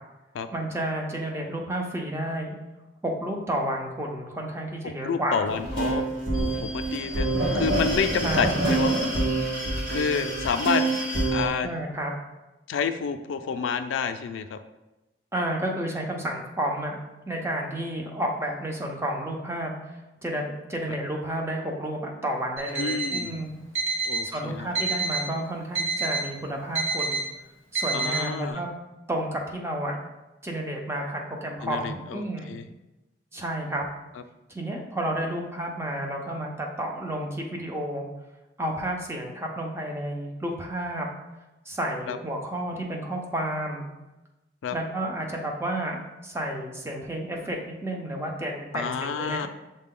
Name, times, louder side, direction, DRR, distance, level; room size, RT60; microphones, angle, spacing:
voice 1, 0.5-2.5 3.0-6.0 8.2-8.8 11.6-12.1 15.3-17.0 17.3-20.4 20.7-23.5 24.2-27.2 27.7-28.7 29.1-30.0 30.4-32.5 33.3-33.9 34.5-38.1 38.6-41.1 41.7-43.9 44.7-49.5, right 1 dB, 15° right, 0 dB, 0.5 m, -31 dB
voice 2, 5.0-6.0 6.3-7.3 7.5-8.9 9.9-10.8 11.3-11.7 12.7-14.6 22.8-23.4 24.1-24.7 27.9-28.6 31.6-32.7 42.1-42.2 44.6-44.8 48.7-49.5, left 6 dB, 80° left, 9 dB, 0.3 m, -29 dB
sound 1, 5.5-11.5, right 2 dB, 45° right, 1.2 m, -26 dB
Alarm, 22.6-23.3 23.8-24.3 24.8-25.3 25.8-26.3 26.8-27.3 27.8-28.3, right 3 dB, 75° right, 1.1 m, -28 dB
6.4 x 2.2 x 3.7 m, 1.0 s
head